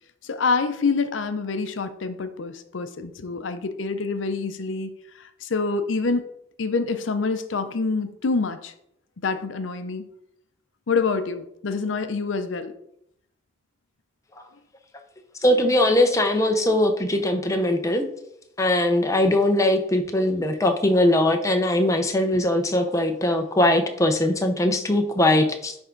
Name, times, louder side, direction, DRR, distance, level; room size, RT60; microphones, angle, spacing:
voice 1, 0.2-4.9 5.4-6.2 6.6-8.7 9.2-10.0 10.9-12.7, left 4 dB, 80° left, 10 dB, 0.6 m, -26 dB
voice 2, 15.4-18.1 18.6-25.8, left 1 dB, 15° left, 5 dB, 0.7 m, -21 dB
10.5 x 3.5 x 3.8 m, 0.76 s
head